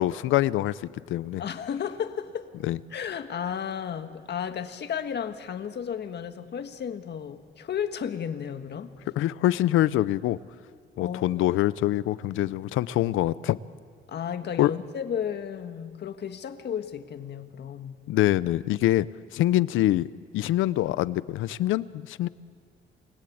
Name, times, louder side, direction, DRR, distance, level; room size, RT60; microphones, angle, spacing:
voice 1, 0.0-1.4 2.6-2.8 9.2-10.4 11.0-13.6 14.6-14.7 18.1-19.1 19.3-20.1 20.3-22.3, left 14 dB, 85° left, 18 dB, 0.7 m, -24 dB
voice 2, 1.4-2.5 2.9-8.9 11.0-11.6 14.1-18.0, left 8 dB, 60° left, 8 dB, 1.6 m, -33 dB
28.5 x 21.0 x 8.7 m, 2.1 s
cardioid pair, 90°, 20 cm